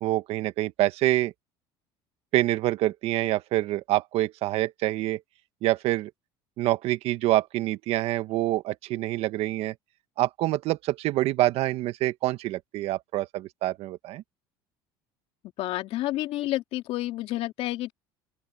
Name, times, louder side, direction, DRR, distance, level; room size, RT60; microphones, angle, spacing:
voice 1, 0.0-1.3 2.3-5.2 5.6-6.1 6.6-9.7 10.2-14.2, right 16 dB, 65° right, 1.5 m, -26 dB
voice 2, 15.6-17.9, left 16 dB, 65° left, 3.0 m, -30 dB
open air
supercardioid pair, 105°, 11 cm